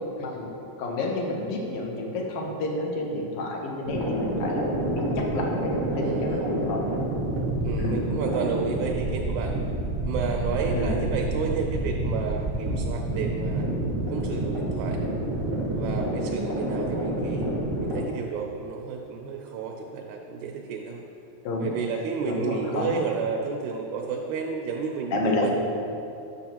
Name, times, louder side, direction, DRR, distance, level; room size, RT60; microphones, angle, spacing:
voice 1, 0.2-0.5 0.8-6.8 7.8-8.0 10.7-11.0 21.4-21.7 22.3-23.0 25.1-25.5, left 2 dB, 65° left, 0 dB, 1.6 m, -29 dB
sound 1, 3.8-18.0, right 1 dB, 40° right, 0.3 m, -28 dB
voice 2, 6.0-6.4 7.6-9.6 10.1-13.7 14.1-15.0 15.7-17.5 17.8-21.0 21.6-25.5, right 6 dB, 80° right, 1 dB, 2.0 m, -31 dB
10.5 x 6.8 x 2.9 m, 2.8 s
omnidirectional pair, 3.5 m